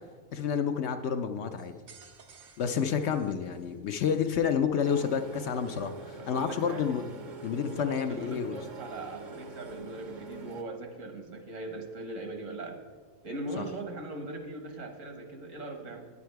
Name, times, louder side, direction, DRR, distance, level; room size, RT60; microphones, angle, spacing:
voice 1, 0.3-1.7 2.6-7.1 7.4-8.6 13.6-13.7, left 7 dB, 65° left, 7 dB, 0.8 m, -29 dB
sound 1, 1.6-4.1, right 6 dB, 85° right, 1.4 m, -56 dB
sound 2, 4.8-10.6, right 2 dB, 45° right, 0.7 m, -44 dB
voice 2, 6.2-6.9 7.6-12.8 13.2-16.1, right 2 dB, 70° right, 4 dB, 1.6 m, -40 dB
9.5 x 8.5 x 4.6 m, 1.5 s
omnidirectional pair, 1.4 m